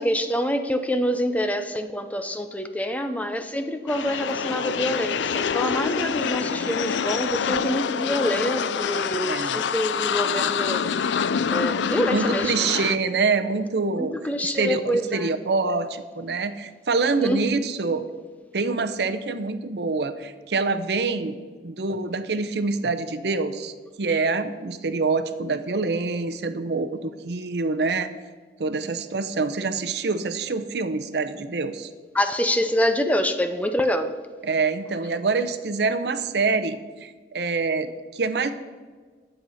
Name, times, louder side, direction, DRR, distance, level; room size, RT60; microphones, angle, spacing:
voice 1, 0.0-11.1 11.5-12.7 14.0-15.3 17.2-17.5 32.1-34.1, equal, 10° left, 8 dB, 0.5 m, -26 dB
sound 1, 3.9-13.0, left 7 dB, 85° left, 0.4 m, -26 dB
voice 2, 6.4-6.7 9.2-9.6 12.1-14.1 14.4-18.1 18.5-21.4 21.6-28.1 28.6-31.9 34.4-38.5, right 4 dB, 65° right, 11 dB, 0.7 m, -26 dB
10.5 x 7.9 x 5.6 m, 1.5 s
head